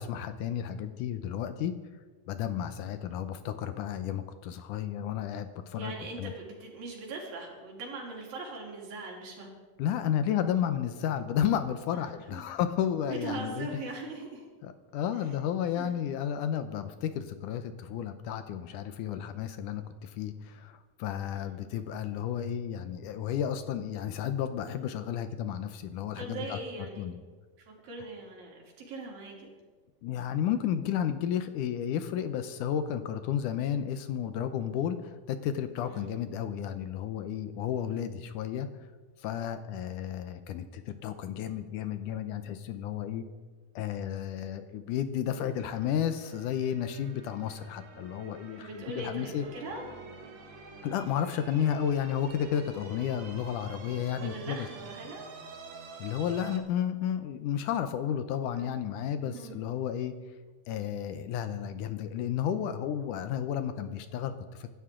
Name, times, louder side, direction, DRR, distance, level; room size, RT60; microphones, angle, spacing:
voice 1, 0.0-1.7 2.3-6.3 9.8-13.7 14.6-26.6 27.0-27.2 30.0-38.7 39.2-43.2 43.8-49.5 50.8-54.7 56.0-60.1 60.7-64.7, left 9 dB, 75° left, 10 dB, 2.1 m, -32 dB
voice 2, 5.7-9.5 11.9-12.4 13.1-14.4 15.7-15.9 21.3-21.6 26.1-27.1 27.7-29.5 35.8-36.1 48.6-49.9 54.1-55.2 58.5-58.8 59.2-59.6, right 3 dB, 80° right, -1 dB, 4.7 m, -41 dB
sound 1, 45.3-56.6, right 4 dB, 50° right, 1.6 m, -48 dB
24.5 x 12.5 x 3.7 m, 1.4 s
omnidirectional pair, 4.0 m